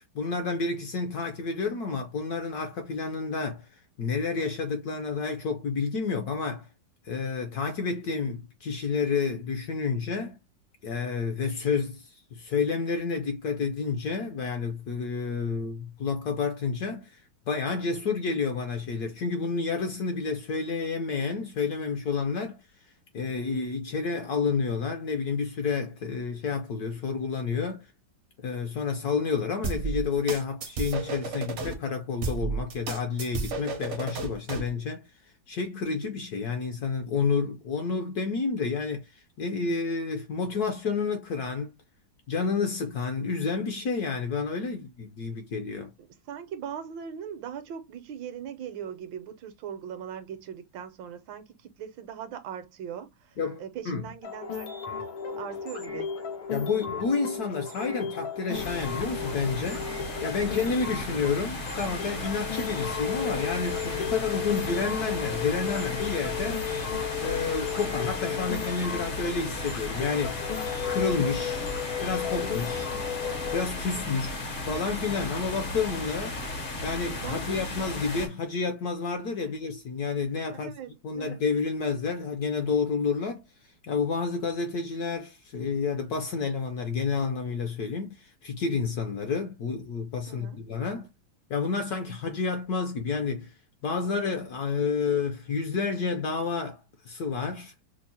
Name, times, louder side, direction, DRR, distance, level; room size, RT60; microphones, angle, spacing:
voice 1, 0.0-3.7 4.0-6.7 7.1-10.4 10.8-22.6 23.1-27.9 28.4-35.0 35.5-41.7 42.3-45.9 53.4-54.1 56.5-59.9 60.2-66.7 67.2-70.4 70.9-71.7 72.0-72.9 73.5-74.3 74.7-76.4 76.8-80.7 81.0-83.4 83.9-91.1 91.5-93.5 93.8-97.7, left 5 dB, 70° left, 1.0 m, -30 dB
sound 1, 29.6-31.7 32.2-34.7, right 5 dB, 60° right, 0.7 m, -32 dB
voice 2, 46.0-54.7 55.4-56.1 73.9-74.3 77.2-77.6 80.5-81.4 90.3-90.6, right 8 dB, 80° right, 1.3 m, -40 dB
sound 2, 54.2-73.6, left 7 dB, 90° left, 1.8 m, -34 dB
sound 3, 58.5-78.3, left 2 dB, 55° left, 0.5 m, -35 dB
5.2 x 2.0 x 2.7 m
omnidirectional pair, 2.1 m